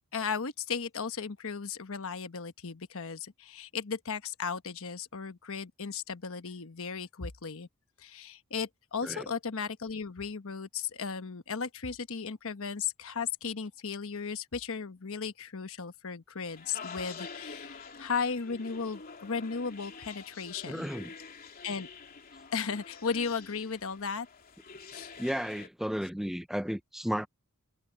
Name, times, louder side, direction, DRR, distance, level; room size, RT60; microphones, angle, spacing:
voice 1, 0.1-7.7 8.0-20.9 21.6-21.9 22.5-24.3 24.9-25.1, left 5 dB, 65° left, 1.1 m, -36 dB
sound 1, 16.5-25.7, left 5 dB, 40° left, 3.1 m, -47 dB
voice 2, 20.7-21.1 25.2-27.3, equal, ahead, 0.4 m, -33 dB
head